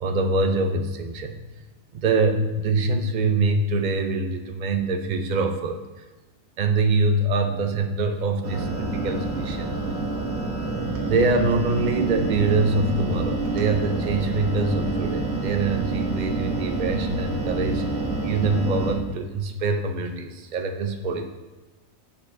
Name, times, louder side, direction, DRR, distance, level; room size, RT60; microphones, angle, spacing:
voice 1, 0.0-1.4 1.9-6.0 6.6-9.7 11.1-17.8 18.2-21.3, right 3 dB, 65° right, 6 dB, 0.4 m, -24 dB
sound 1, 8.4-19.0, right 3 dB, 85° right, 1.5 m, -27 dB
8.4 x 6.1 x 2.6 m, 1.2 s
omnidirectional pair, 1.4 m